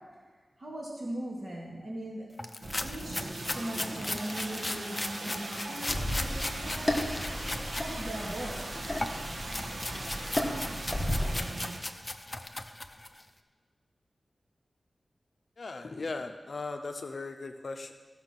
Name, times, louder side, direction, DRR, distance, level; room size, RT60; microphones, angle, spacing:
voice 1, 0.6-2.3 2.8-7.2 7.8-8.6 9.9-10.0, right 1 dB, 45° right, -4 dB, 2.4 m, -39 dB
sound 1, 2.4-7.9 8.2-13.2, left 1 dB, 25° left, 0.6 m, -37 dB
sound 2, 2.6-11.8, right 2 dB, 60° right, 1.4 m, -40 dB
sound 3, 5.9-11.4, left 1 dB, 5° left, 1.8 m, -34 dB
voice 2, 15.6-17.9, left 3 dB, 60° left, 5 dB, 0.6 m, -38 dB
15.0 x 5.9 x 6.0 m, 1.4 s
wide cardioid pair, 90°, 0 cm